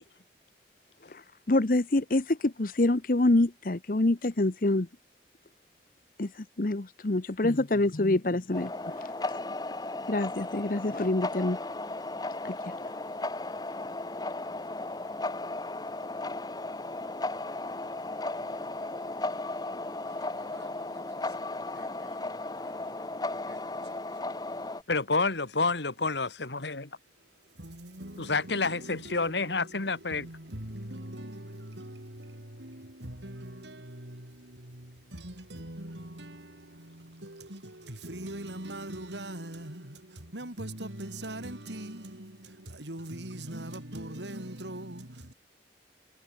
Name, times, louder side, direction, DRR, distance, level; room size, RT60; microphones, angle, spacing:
voice 1, 1.5-4.9 6.2-6.3 6.6-8.7 10.1-11.6 12.4-12.7, left 2 dB, 50° left, 0.9 m, -26 dB
sound 1, 8.5-24.8, left 2 dB, 20° left, 1.0 m, -35 dB
voice 2, 18.4-18.8 20.0-23.6 23.9-24.0 24.2-24.3 27.6-45.3, right 1 dB, 90° right, 5.1 m, -42 dB
voice 3, 24.9-26.9 28.2-30.3, left 3 dB, 85° left, 2.5 m, -29 dB
head